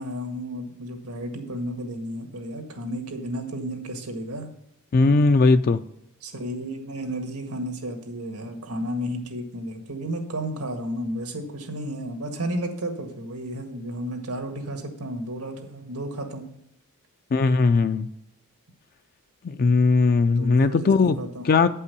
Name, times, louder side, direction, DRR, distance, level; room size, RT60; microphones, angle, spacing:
voice 1, 0.0-4.5 6.2-16.4 20.3-21.4, equal, 90° right, 4 dB, 1.7 m, -32 dB
voice 2, 4.9-5.8 17.3-18.1 19.4-21.2 21.4-21.7, left 4 dB, 45° left, 10 dB, 0.4 m, -19 dB
9.1 x 5.5 x 6.7 m, 0.78 s
head